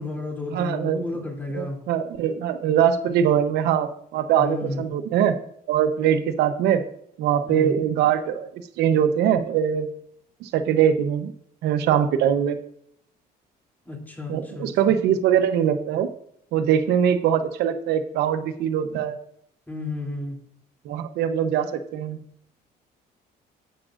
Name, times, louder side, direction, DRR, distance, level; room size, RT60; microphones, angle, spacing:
voice 1, 0.0-1.8 4.4-4.9 7.5-7.7 13.8-14.7 19.7-20.4, left 2 dB, 10° left, 0 dB, 2.9 m, -32 dB
voice 2, 0.5-1.0 1.5-5.3 5.7-6.8 7.2-8.5 8.8-9.9 10.4-11.3 11.6-12.6 14.3-16.1 16.5-19.2 20.8-22.2, right 9 dB, 80° right, 9 dB, 0.9 m, -22 dB
12.5 x 9.0 x 2.5 m, 0.68 s
cardioid pair, 110°, 17 cm